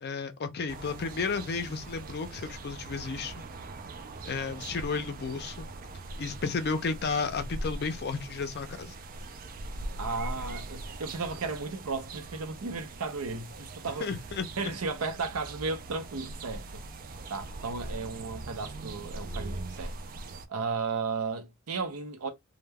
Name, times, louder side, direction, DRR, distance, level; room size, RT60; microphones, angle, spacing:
voice 1, 0.0-3.4 4.3-5.7 6.2-8.9 14.0-14.5, left 4 dB, 45° left, 0.4 m, -33 dB
sound 1, 0.7-20.5, right 2 dB, 40° right, 0.3 m, -41 dB
voice 2, 10.0-14.1 14.6-16.8 17.3-19.9 20.5-22.3, right 4 dB, 80° right, 0.6 m, -34 dB
2.2 x 2.1 x 3.3 m
head